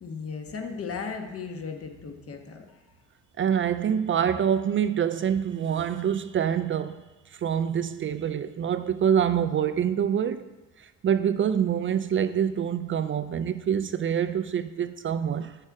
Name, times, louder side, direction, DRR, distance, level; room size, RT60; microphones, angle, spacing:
voice 1, 0.0-2.8, left 5 dB, 50° left, 1.2 m, -36 dB
voice 2, 3.4-7.0 7.3-10.5 10.8-15.6, right 8 dB, 40° right, 0.4 m, -26 dB
7.4 x 6.5 x 4.8 m
cardioid pair, 90°, 30 cm